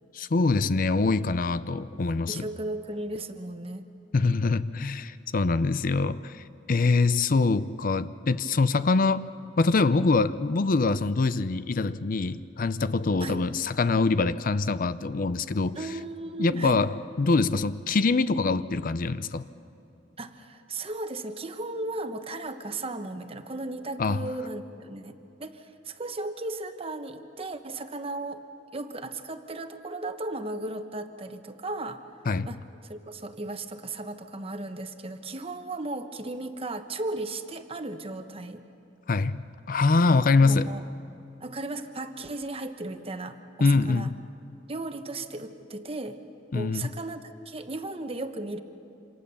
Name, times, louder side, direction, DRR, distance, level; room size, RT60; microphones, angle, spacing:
voice 1, 0.1-2.4 4.1-9.3 9.6-15.8 16.4-19.5 24.0-24.3 32.3-32.5 39.1-40.7 43.6-44.1 46.5-46.9, left 3 dB, 50° left, 14 dB, 0.5 m, -24 dB
voice 2, 2.3-3.8 13.2-13.4 15.7-16.8 20.2-28.4 28.7-32.0 32.5-32.6 32.8-38.6 40.4-40.8 41.4-44.1 44.7-46.2 46.5-48.6, right 2 dB, 30° right, 8 dB, 1.1 m, -36 dB
27.5 x 26.5 x 6.9 m, 2.8 s
head